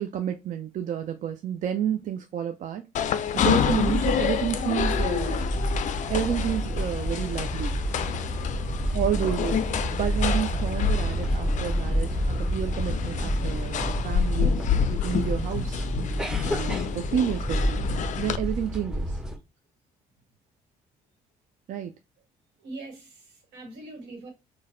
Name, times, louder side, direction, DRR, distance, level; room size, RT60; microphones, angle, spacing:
voice 1, 0.0-2.9 3.3-5.4 6.1-7.8 8.9-15.9 16.4-17.8 18.2-19.2 21.7-21.9, right 9 dB, 45° right, 0.4 m, -30 dB
sound 1, 2.9-18.4, left 9 dB, 40° left, 0.4 m, -29 dB
sound 2, 3.6-19.4, equal, 5° right, 0.7 m, -29 dB
voice 2, 22.6-24.3, right 2 dB, 70° right, 1.2 m, -42 dB
3.9 x 2.2 x 2.6 m
hypercardioid pair, 50°, 19 cm